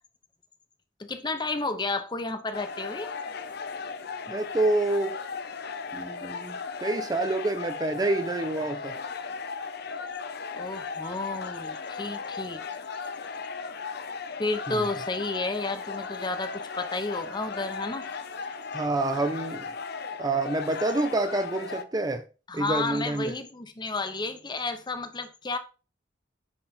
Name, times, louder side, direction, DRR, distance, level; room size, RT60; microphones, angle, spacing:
voice 1, 1.0-3.1 10.5-12.8 14.4-18.1 22.5-25.6, left 3 dB, 20° left, 0.8 m, -32 dB
sound 1, 2.5-21.8, left 5 dB, 55° left, 0.6 m, -36 dB
voice 2, 4.3-5.2 5.9-6.6 6.8-8.9 14.7-14.8 18.7-19.6 20.2-22.2 22.5-23.3, right 2 dB, 20° right, 0.5 m, -27 dB
9.7 x 4.1 x 4.2 m
head